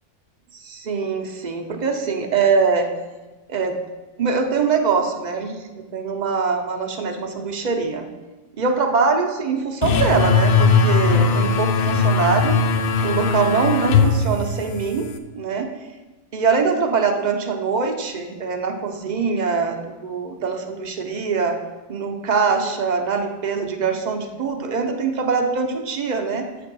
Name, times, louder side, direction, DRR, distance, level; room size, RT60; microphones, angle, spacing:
voice 1, 0.6-2.9 3.5-3.8 4.2-8.0 8.6-12.6 13.0-15.1 15.3-15.7 16.3-21.5 21.9-26.5, right 5 dB, 45° right, 4 dB, 0.7 m, -23 dB
sound 1, 9.8-15.2, left 4 dB, 60° left, 0.6 m, -19 dB
8.0 x 3.4 x 6.0 m, 1.2 s
omnidirectional pair, 1.2 m